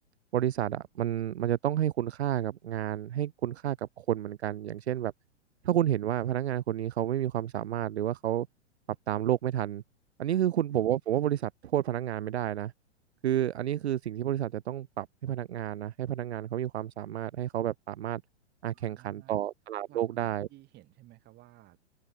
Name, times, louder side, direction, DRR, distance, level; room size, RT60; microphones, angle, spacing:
voice 1, 0.3-5.1 5.6-8.5 9.1-9.8 10.2-12.7 13.2-18.2 18.6-20.5, right 11 dB, 65° right, 0.5 m, -30 dB
voice 2, 18.7-19.4 19.9-21.8, right 17 dB, 30° right, 6.6 m, -55 dB
figure-of-eight pair, 110°, 36 cm